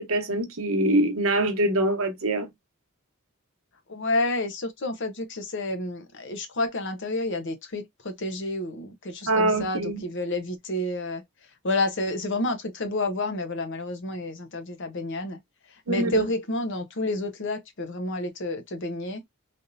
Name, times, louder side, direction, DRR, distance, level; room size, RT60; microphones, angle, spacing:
voice 1, 0.0-2.5 9.3-10.0 15.9-16.3, right 1 dB, 70° right, 1.0 m, -24 dB
voice 2, 3.9-11.2 11.6-15.4 15.9-19.2, left 2 dB, 60° left, 0.8 m, -29 dB
3.5 x 2.7 x 2.5 m
head